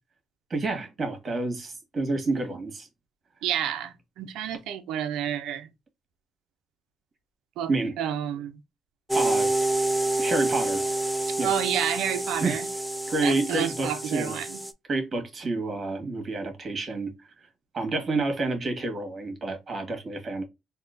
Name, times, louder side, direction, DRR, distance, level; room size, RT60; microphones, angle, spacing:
voice 1, 0.5-2.9 7.7-8.0 9.1-9.5 10.2-10.8 11.4-11.5 12.4-12.6 13.1-14.4 14.9-17.1 17.7-20.4, right 3 dB, 40° right, 1.7 m, -29 dB
voice 2, 3.4-5.7 7.6-7.7 8.0-8.6 11.4-12.7 13.2-14.6, right 10 dB, 90° right, 0.6 m, -30 dB
sound 1, 9.1-14.7, right 2 dB, ahead, 0.5 m, -28 dB
3.7 x 2.8 x 2.6 m
cardioid pair, 90°, 0 cm